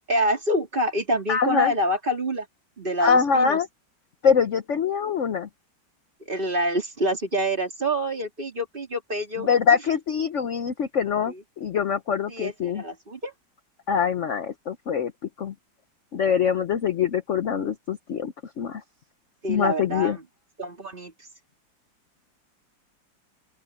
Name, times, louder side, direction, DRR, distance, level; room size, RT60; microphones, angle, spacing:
voice 1, 0.1-2.5 2.8-3.6 6.3-9.5 11.3-11.4 12.3-13.3 19.4-20.2 20.6-21.1, equal, 25° right, 3.1 m, -26 dB
voice 2, 1.3-1.7 3.0-3.7 4.2-5.5 9.4-12.8 13.9-15.1 15.4-15.5 16.1-18.8 19.5-20.2, left 6 dB, 55° left, 0.9 m, -24 dB
open air
omnidirectional pair, 2.0 m